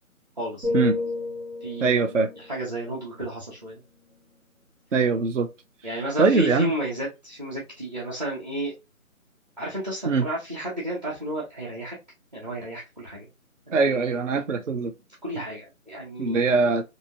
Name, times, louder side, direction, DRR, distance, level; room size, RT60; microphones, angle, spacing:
voice 1, 0.4-0.8 1.6-3.8 5.8-8.7 9.6-12.0 12.3-13.3 13.7-13.8 14.8-14.9 15.2-16.6, right 1 dB, 30° right, 0.9 m, -32 dB
sound 1, 0.6-4.5 5.0-5.3, left 3 dB, 85° right, 1.9 m, -33 dB
voice 2, 1.8-2.3 4.9-5.5 6.2-6.7 10.1-10.3 13.7-14.9 16.2-16.8, right 4 dB, 60° right, 0.5 m, -22 dB
2.9 x 2.7 x 2.5 m
figure-of-eight pair, 170°, 43 cm